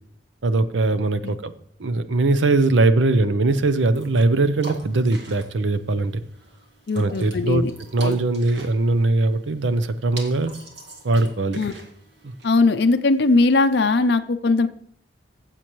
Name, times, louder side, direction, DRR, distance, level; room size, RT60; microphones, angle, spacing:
voice 1, 0.4-1.5 1.8-6.2 6.9-7.6 7.9-10.5 11.0-11.6 12.2-12.3, right 2 dB, 90° right, 12 dB, 0.7 m, -21 dB
sound 1, 3.5-14.0, right 1 dB, 70° right, 2.0 m, -43 dB
voice 2, 6.9-7.7 8.0-8.1 11.6-11.7 12.4-14.7, left 3 dB, 60° left, 8 dB, 0.5 m, -19 dB
15.0 x 7.5 x 3.1 m, 0.65 s
head